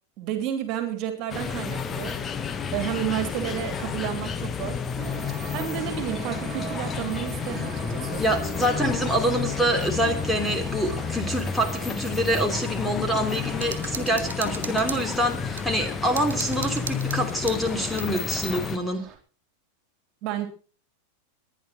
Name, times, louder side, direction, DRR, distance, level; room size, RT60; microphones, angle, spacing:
voice 1, 0.2-2.2 2.7-4.8 5.5-8.2 20.2-20.5, right 11 dB, 40° right, 8 dB, 3.0 m, -31 dB
sound 1, 1.3-18.8, left 6 dB, 20° left, 1.2 m, -31 dB
sound 2, 5.0-19.2, right 8 dB, 20° right, 3.9 m, -42 dB
voice 2, 8.2-19.0, right 1 dB, ahead, 1 dB, 3.1 m, -26 dB
sound 3, 13.6-15.7 16.2-18.1, right 6 dB, 65° right, 1.7 m, -37 dB
22.0 x 10.0 x 4.2 m, 0.40 s
figure-of-eight pair, 90°, 0 cm